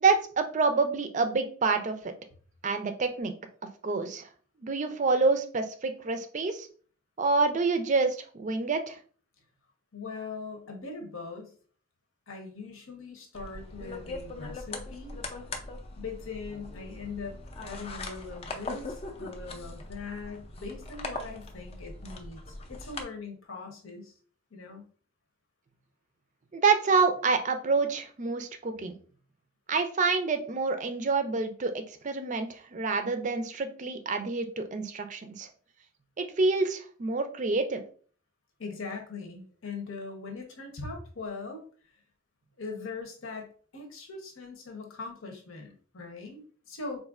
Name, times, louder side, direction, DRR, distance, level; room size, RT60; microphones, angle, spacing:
voice 1, 0.0-2.0 2.6-3.3 3.8-4.3 4.6-6.7 7.2-9.0 26.5-28.9 29.7-35.5 36.2-37.8, right 4 dB, 35° right, 7 dB, 0.4 m, -27 dB
voice 2, 9.9-11.5 12.3-15.2 16.0-24.1 24.5-24.8 38.6-41.6 42.6-47.0, left 4 dB, 80° left, 3 dB, 0.9 m, -41 dB
sound 1, 13.3-23.0, left 2 dB, 30° left, 0.4 m, -40 dB
4.1 x 2.5 x 2.4 m, 0.43 s
head